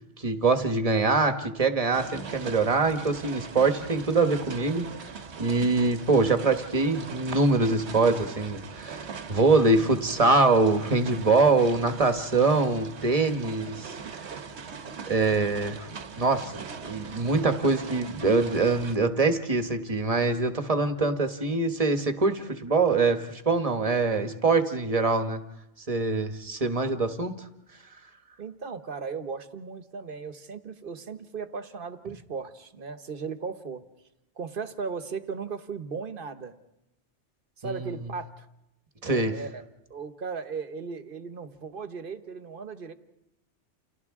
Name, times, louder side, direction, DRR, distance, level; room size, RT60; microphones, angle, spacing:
voice 1, 0.2-4.9 5.4-14.3 15.0-15.9 16.2-25.4 25.9-27.3 37.6-37.9 39.0-39.3, right 3 dB, 30° right, 7 dB, 1.2 m, -24 dB
sound 1, 1.9-19.0, right 5 dB, 70° right, 1.3 m, -41 dB
voice 2, 28.4-33.8 34.4-36.5 37.6-38.5 39.0-39.6 39.9-42.9, right 5 dB, 50° right, 10 dB, 1.2 m, -36 dB
29.5 x 28.5 x 3.6 m, 0.90 s
omnidirectional pair, 1.2 m